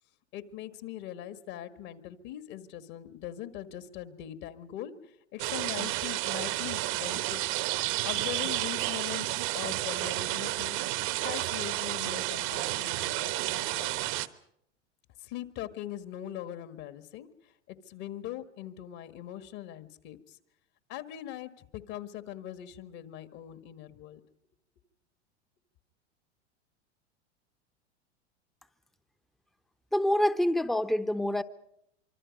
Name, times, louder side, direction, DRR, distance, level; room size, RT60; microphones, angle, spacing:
voice 1, 0.3-7.4 8.0-10.8 11.2-14.0 15.2-20.4 20.9-24.2, left 12 dB, 50° left, 1.8 m, -41 dB
sound 1, 5.4-14.3, right 17 dB, 50° right, 1.2 m, -31 dB
voice 2, 29.9-31.4, left 1 dB, ahead, 0.9 m, -26 dB
25.5 x 24.5 x 5.3 m
hypercardioid pair, 95°, 35 cm